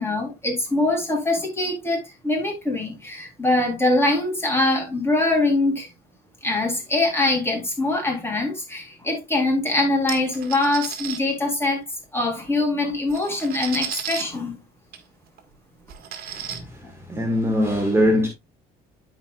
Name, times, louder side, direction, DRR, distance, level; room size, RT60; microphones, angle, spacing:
voice 1, 0.0-5.9 6.4-11.8 12.1-14.6, left 2 dB, 15° left, 3.6 m, -23 dB
sound 1, 10.1-11.2 12.5-12.6 12.9-14.2 14.9-15.0 15.4-15.5 15.9-16.6, right 9 dB, 65° right, 1.6 m, -33 dB
voice 2, 16.3-18.3, equal, 15° right, 1.7 m, -22 dB
12.5 x 4.8 x 2.4 m
cardioid pair, 110°, 17 cm